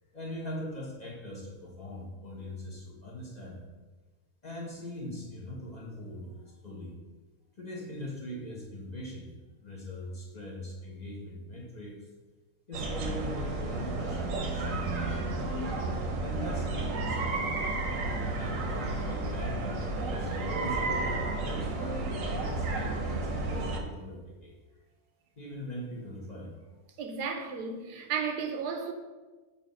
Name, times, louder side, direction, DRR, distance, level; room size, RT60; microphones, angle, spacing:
voice 1, 0.1-3.6 4.4-7.0 7.6-12.1 12.7-15.0 16.2-17.6 18.1-21.0 21.3-24.5 25.4-26.5, equal, 30° left, 1.0 m, -41 dB
sound 1, 12.7-23.8, right 2 dB, 60° right, 1.1 m, -32 dB
voice 2, 27.0-28.9, right 6 dB, 90° right, 1.3 m, -33 dB
7.0 x 2.8 x 5.1 m
omnidirectional pair, 1.7 m